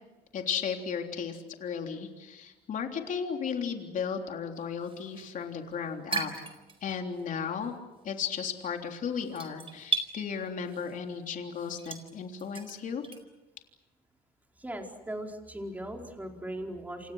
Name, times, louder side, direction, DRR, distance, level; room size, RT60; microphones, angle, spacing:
voice 1, 0.3-6.3 6.8-7.7 8.0-13.0, left 6 dB, 50° left, 3 dB, 3.6 m, -35 dB
sound 1, 4.6-7.2 7.5-13.2, right 5 dB, 35° right, 4.4 m, -37 dB
voice 2, 14.6-17.1, right 1 dB, 10° right, 2 dB, 4.6 m, -38 dB
28.5 x 28.0 x 6.5 m, 1.1 s
cardioid pair, 110°, 17 cm